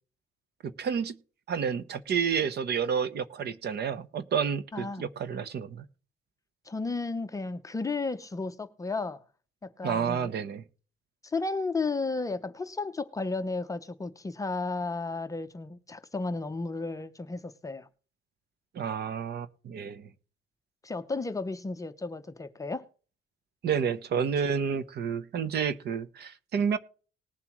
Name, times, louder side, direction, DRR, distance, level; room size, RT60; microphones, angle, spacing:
voice 1, 0.6-1.2 1.5-5.8 9.8-10.6 18.7-20.1 23.6-26.8, right 7 dB, 55° right, 0.9 m, -30 dB
voice 2, 4.7-5.0 6.6-9.2 9.6-10.3 11.2-17.9 20.8-22.9, left 3 dB, 15° left, 0.6 m, -33 dB
19.5 x 7.3 x 3.1 m
cardioid pair, 170°, 21 cm